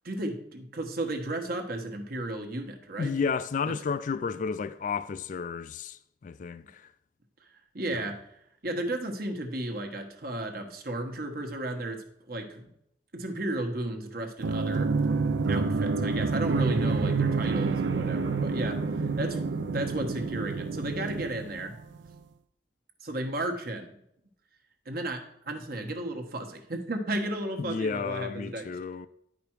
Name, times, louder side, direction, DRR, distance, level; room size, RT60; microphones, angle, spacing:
voice 1, 0.0-3.1 3.7-3.8 7.7-8.3 8.6-12.7 13.1-14.9 15.5-19.4 19.7-21.7 23.0-23.9 24.9-28.8, right 1 dB, 55° right, 1.2 m, -34 dB
voice 2, 3.0-6.9 7.9-8.1 27.6-29.1, left 5 dB, 45° left, 0.3 m, -32 dB
sound 1, 14.4-22.0, right 4 dB, 75° right, 0.5 m, -28 dB
9.7 x 5.1 x 4.6 m
head